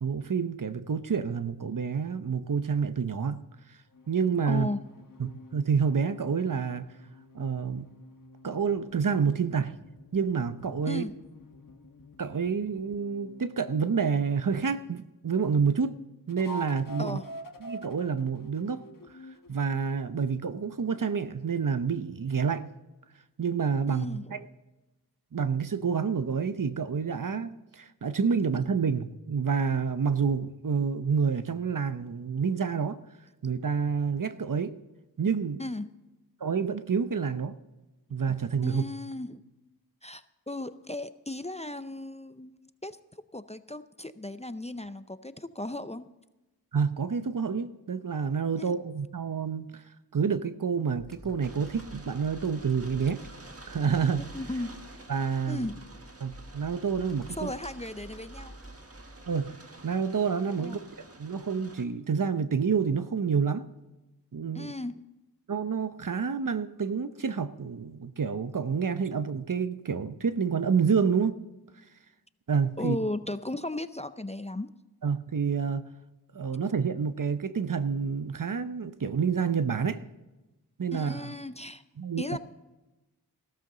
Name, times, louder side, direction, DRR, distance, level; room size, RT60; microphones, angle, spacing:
voice 1, 0.0-3.4 4.1-4.7 5.2-6.9 7.3-7.9 8.4-9.8 10.1-11.0 12.2-16.0 16.3-17.2 17.6-18.8 19.5-22.7 23.4-24.4 25.3-33.0 33.4-34.8 35.2-35.6 36.4-37.5 38.1-38.8 46.7-49.8 50.1-53.2 53.7-54.3 55.1-55.7 56.2-57.5 59.3-60.8 61.2-63.7 64.3-64.7 65.5-71.4 72.5-73.0 75.0-75.9 76.3-80.0 80.8-81.3 82.0-82.2, right 6 dB, 55° right, 0.8 m, -28 dB
sound 1, 3.9-14.1 16.3-19.9, equal, 55° left, 1.2 m, -48 dB
voice 2, 4.5-4.8 10.9-11.1 17.0-17.3 23.9-24.4 35.6-35.9 38.6-39.4 40.0-43.0 43.3-46.1 48.6-48.7 54.2-54.8 55.5-55.9 57.4-58.5 60.6-60.8 64.5-64.9 72.8-74.7 80.9-81.8 82.2-82.4, left 2 dB, 15° left, 0.5 m, -36 dB
Computer keyboard, 51.0-59.5, right 1 dB, ahead, 2.4 m, -49 dB
sound 2, 51.4-61.9, right 2 dB, 40° right, 1.6 m, -50 dB
15.5 x 13.5 x 3.9 m
wide cardioid pair, 60°, 38 cm